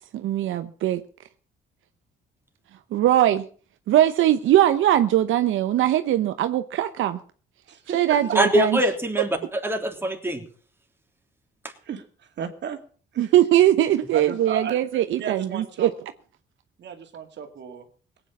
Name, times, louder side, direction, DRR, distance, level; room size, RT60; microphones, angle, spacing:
voice 1, 0.1-1.0 2.9-3.4 3.9-7.2 7.9-8.8 13.2-15.9, right 12 dB, 80° right, 10 dB, 0.9 m, -20 dB
voice 2, 7.7-8.4 11.8-12.8 13.1-13.3 14.1-14.8 15.1-15.9 16.8-17.9, right 7 dB, 60° right, 6 dB, 2.3 m, -34 dB
voice 3, 8.3-10.4, right 1 dB, 10° right, 3 dB, 3.2 m, -23 dB
17.5 x 9.0 x 7.1 m, 0.42 s
cardioid pair, 90°, 20 cm